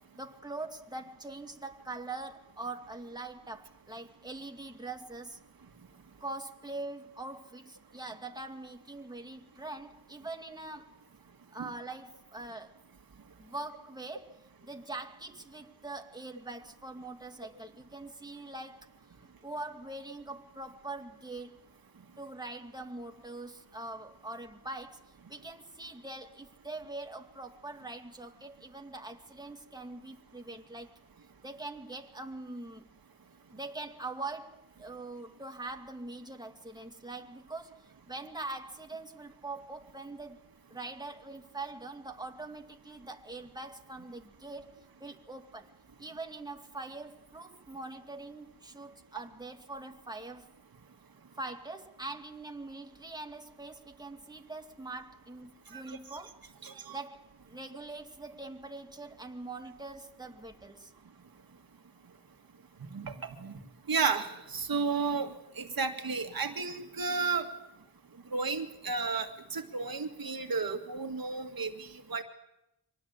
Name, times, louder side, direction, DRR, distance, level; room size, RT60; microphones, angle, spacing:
voice 1, 0.1-5.4 6.2-10.9 11.5-12.7 13.4-14.4 14.6-21.7 22.2-30.9 31.4-32.9 33.5-40.4 40.7-45.7 46.0-50.5 51.4-56.4 56.9-60.9, right 2 dB, 10° right, 2.3 m, -43 dB
voice 2, 55.7-56.2 56.6-57.0 62.8-63.6 63.9-67.5 68.3-72.2, right 5 dB, 60° right, 2.1 m, -33 dB
24.5 x 19.0 x 8.4 m
cardioid pair, 60°, 39 cm